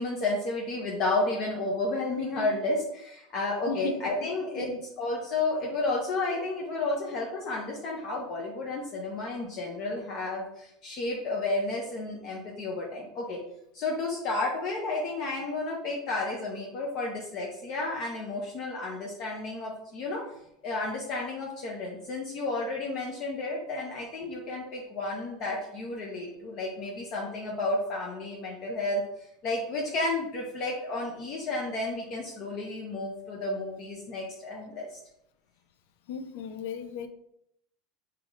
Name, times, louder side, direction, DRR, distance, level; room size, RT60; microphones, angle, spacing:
voice 1, 0.0-4.7 5.0-13.4 13.7-20.2 20.6-34.9, left 2 dB, 50° left, 0.8 m, -32 dB
voice 2, 3.7-4.0 4.6-4.8 36.1-37.1, left 6 dB, 75° left, 0.5 m, -35 dB
3.4 x 2.9 x 3.7 m
supercardioid pair, 125°, 0 cm